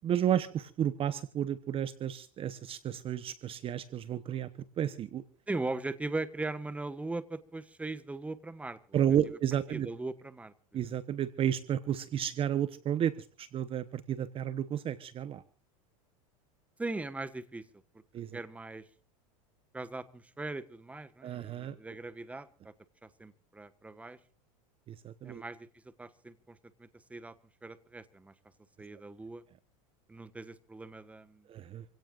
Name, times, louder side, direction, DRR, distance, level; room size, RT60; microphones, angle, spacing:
voice 1, 0.0-4.5 4.8-5.2 8.9-9.9 10.7-15.4 18.1-18.4 21.2-21.8 24.9-25.4 31.5-31.8, right 10 dB, 30° right, 14 dB, 0.9 m, -32 dB
voice 2, 5.5-9.0 9.7-10.5 16.8-17.6 18.3-18.9 19.7-22.7 23.0-24.2 25.2-25.7 26.0-27.3 27.6-28.3 28.8-29.4 30.1-31.4, right 2 dB, 10° right, 13 dB, 1.3 m, -39 dB
27.0 x 17.0 x 2.5 m, 0.40 s
supercardioid pair, 115°, 18 cm